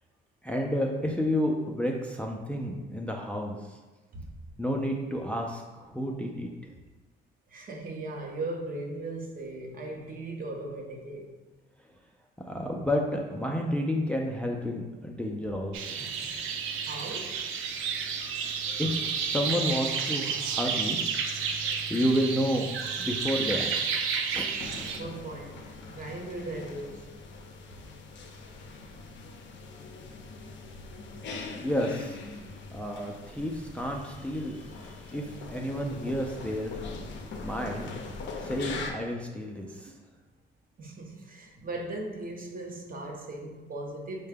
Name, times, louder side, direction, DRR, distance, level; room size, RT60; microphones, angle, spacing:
voice 1, 0.4-3.8 4.6-6.5 12.5-16.1 18.8-21.0 21.9-22.6 23.0-23.7 24.3-24.5 31.6-32.2 32.7-34.6 35.1-36.8 37.4-37.9 38.4-39.9, equal, 5° left, 0.4 m, -30 dB
voice 2, 7.5-11.4 16.9-17.4 24.8-25.6 25.9-27.2 40.8-44.3, right 2 dB, 45° right, 0.7 m, -38 dB
sound 1, 15.7-25.0, right 6 dB, 90° right, 0.4 m, -31 dB
sound 2, 24.6-38.9, left 3 dB, 65° left, 0.5 m, -42 dB
4.6 x 2.2 x 3.4 m
cardioid pair, 90°, 20 cm